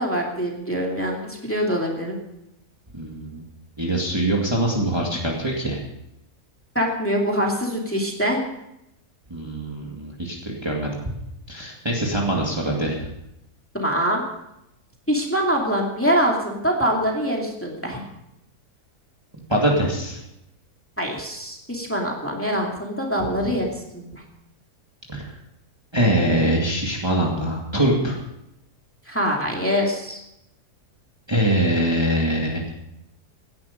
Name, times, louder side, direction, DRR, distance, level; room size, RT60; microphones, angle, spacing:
voice 1, 0.0-2.2 6.7-8.4 13.7-14.2 15.1-18.0 21.0-24.2 29.1-30.2, equal, 10° left, -1 dB, 2.5 m, -24 dB
voice 2, 2.9-3.4 3.8-5.8 9.3-10.9 11.5-13.0 19.5-20.2 25.1-25.3 25.9-28.2 31.3-32.6, right 1 dB, 15° right, -2 dB, 2.2 m, -23 dB
17.0 x 11.5 x 5.2 m, 0.82 s
omnidirectional pair, 1.7 m